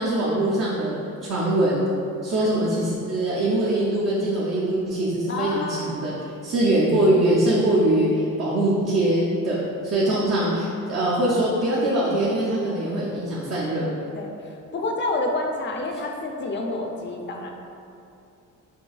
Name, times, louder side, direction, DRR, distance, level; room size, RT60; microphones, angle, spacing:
voice 1, 0.0-1.8 2.2-6.1 6.4-13.9, right 1 dB, 50° right, -7 dB, 0.7 m, -22 dB
voice 2, 5.3-6.0 10.1-10.5 14.2-17.5, left 2 dB, 35° left, 1 dB, 0.5 m, -29 dB
4.5 x 2.7 x 2.4 m, 2.7 s
cardioid pair, 90°, 33 cm